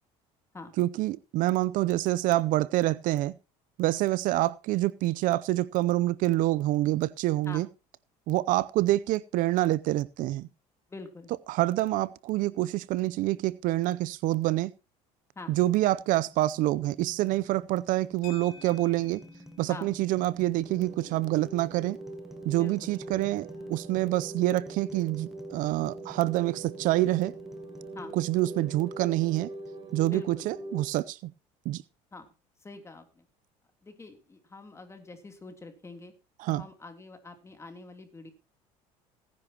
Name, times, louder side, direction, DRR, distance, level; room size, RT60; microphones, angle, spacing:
voice 1, 0.8-3.3 3.8-7.7 8.3-10.5 11.5-14.7 15.5-19.2 19.6-22.0 22.4-27.3 28.1-29.5 29.9-31.3 31.7-31.8 36.4-36.6, right 16 dB, 65° right, 0.6 m, -27 dB
voice 2, 10.9-11.3 15.3-15.6 19.7-20.0 22.5-22.9 27.9-28.2 30.1-30.5 32.1-32.3 32.6-33.2 33.8-36.1 36.5-38.3, left 3 dB, 20° left, 3.1 m, -45 dB
sound 1, 16.0-30.9, right 1 dB, ahead, 1.4 m, -50 dB
sound 2, 18.2-26.7, left 7 dB, 85° left, 4.0 m, -56 dB
sound 3, 20.6-30.9, right 2 dB, 35° right, 5.1 m, -43 dB
18.0 x 10.5 x 2.9 m
supercardioid pair, 105°, 15 cm